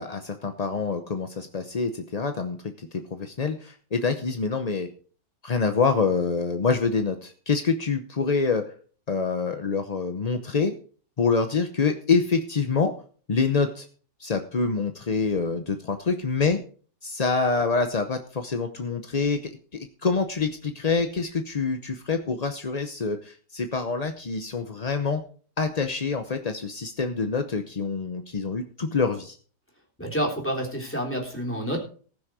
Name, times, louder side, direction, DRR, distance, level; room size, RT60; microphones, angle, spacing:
voice 1, 0.0-4.9 5.4-8.6 9.1-10.7 11.2-12.9 13.3-13.9 14.2-16.6 17.0-25.2 25.6-29.4, left 4 dB, 40° left, 7 dB, 0.6 m, -26 dB
voice 2, 30.0-31.8, equal, 5° left, -2 dB, 3.4 m, -28 dB
19.0 x 6.4 x 4.8 m, 0.43 s
omnidirectional pair, 1.8 m